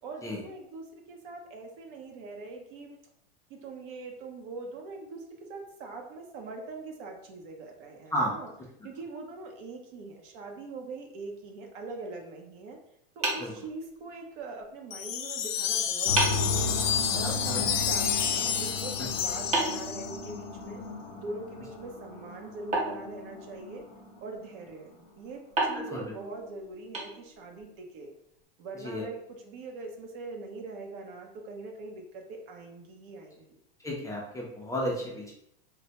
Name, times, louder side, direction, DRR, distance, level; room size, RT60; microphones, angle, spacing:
voice 1, 0.0-3.0 3.5-5.2 5.5-8.5 8.8-12.8 13.2-20.8 21.2-23.8 24.2-28.1 28.6-33.6, right 3 dB, 60° right, 2 dB, 0.7 m, -42 dB
sound 1, 13.2-14.3 15.6-15.7 16.2-16.6 19.5-20.7 22.7-23.8 25.6-27.6, right 2 dB, 25° right, 0.8 m, -32 dB
Wind chime, 14.9-20.3, left 9 dB, 85° left, 0.5 m, -30 dB
sound 2, 16.1-24.7, left 3 dB, 50° left, 0.8 m, -36 dB
voice 2, 17.2-17.6 19.0-19.1 25.7-26.1 28.8-29.0 33.8-35.3, equal, 10° left, -3 dB, 0.4 m, -33 dB
3.1 x 2.1 x 2.8 m, 0.75 s
supercardioid pair, 125°, 29 cm